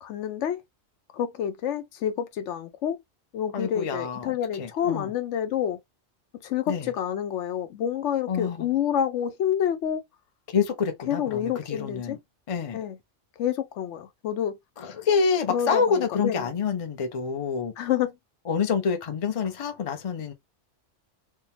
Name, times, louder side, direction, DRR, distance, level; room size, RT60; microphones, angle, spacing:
voice 1, 0.0-0.6 1.1-3.0 3.3-5.8 6.4-10.0 11.1-12.2 12.7-13.0 13.4-14.6 15.5-16.5 17.8-18.1, left 9 dB, 75° left, 0.9 m, -28 dB
voice 2, 3.5-5.1 6.7-6.9 8.3-8.7 10.5-12.2 12.5-12.8 14.8-17.7 18.5-20.3, left 5 dB, 40° left, 0.5 m, -27 dB
3.5 x 2.2 x 2.7 m
omnidirectional pair, 1.2 m